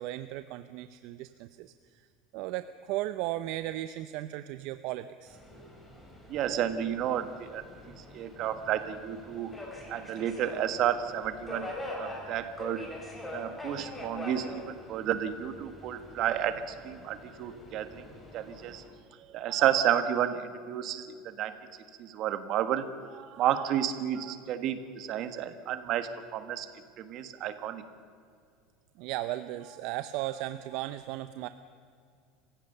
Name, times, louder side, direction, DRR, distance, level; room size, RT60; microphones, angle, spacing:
voice 1, 0.0-2.1 2.3-5.4 29.0-31.5, right 15 dB, 60° right, 12 dB, 0.7 m, -36 dB
Subway metro underground, 5.3-18.9, left 1 dB, 10° left, 4.3 m, -44 dB
voice 2, 6.3-7.6 8.1-9.5 9.9-11.7 12.0-12.9 13.3-18.0 18.3-18.8 19.3-21.1 21.4-21.6 22.0-26.7 27.0-27.8, right 10 dB, 45° right, 10 dB, 1.6 m, -31 dB
27.0 x 16.0 x 6.8 m, 2.3 s
cardioid pair, 155°, 0 cm